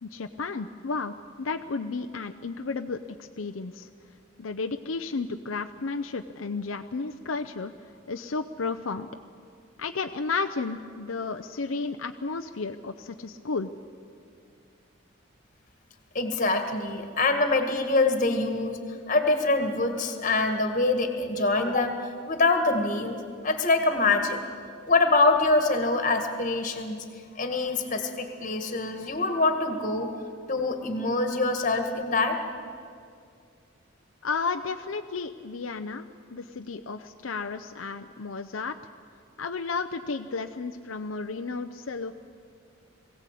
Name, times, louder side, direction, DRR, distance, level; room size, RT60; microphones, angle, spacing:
voice 1, 0.0-3.9 4.4-7.7 8.1-9.1 9.8-13.7 34.2-36.1 36.3-38.7 39.4-42.1, left 4 dB, 80° left, 7 dB, 0.6 m, -33 dB
voice 2, 16.1-18.8 19.1-21.9 22.3-24.4 24.9-27.1 27.4-30.1 30.5-32.4, left 3 dB, 40° left, 6 dB, 1.9 m, -25 dB
21.5 x 16.5 x 8.4 m, 2.3 s
head